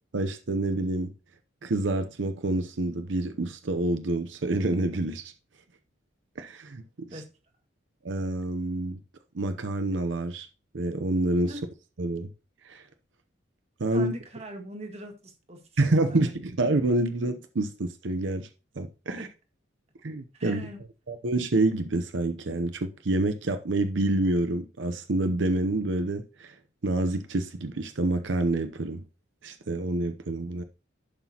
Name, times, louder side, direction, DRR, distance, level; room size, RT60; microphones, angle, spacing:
voice 1, 0.1-1.1 1.6-5.3 6.4-6.8 7.1-7.2 8.0-9.0 9.3-10.5 10.7-11.5 12.0-12.3 12.6-12.9 13.8-14.1 15.8-18.5 18.8-19.3 20.0-20.7 21.1-26.6 26.8-29.0 29.4-30.6, right 2 dB, 80° right, 0.7 m, -27 dB
voice 2, 13.9-15.6 15.9-16.3 19.2-19.3 20.3-20.8, right 1 dB, 35° right, 1.7 m, -41 dB
11.5 x 5.9 x 2.9 m
head